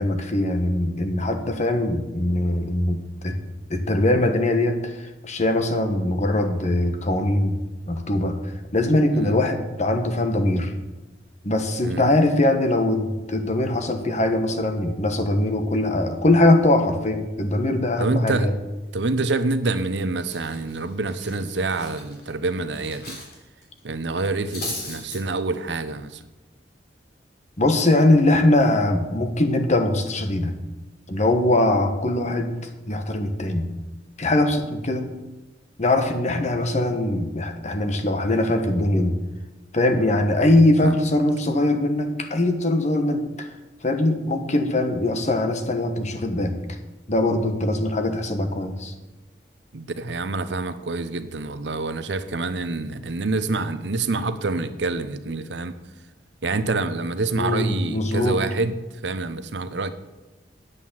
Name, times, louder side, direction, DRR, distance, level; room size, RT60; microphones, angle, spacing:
voice 1, 0.0-3.4 3.7-7.6 7.9-8.4 8.7-10.7 11.4-18.5 27.6-30.6 31.1-32.5 32.9-33.7 34.2-35.1 35.8-39.2 39.7-43.5 43.8-46.8 47.1-48.9 57.3-58.4, left 1 dB, 40° left, 7 dB, 1.2 m, -21 dB
voice 2, 11.8-12.2 18.0-18.5 18.9-23.2 23.8-26.2 40.5-41.0 49.7-55.7 56.4-59.9, right 3 dB, 80° right, 11 dB, 0.8 m, -27 dB
Cutlery silverware, 19.6-19.9 20.2-23.3 23.6-23.8 24.2-25.2, left 2 dB, 60° left, 3.8 m, -36 dB
9.3 x 8.2 x 7.2 m, 1.1 s
head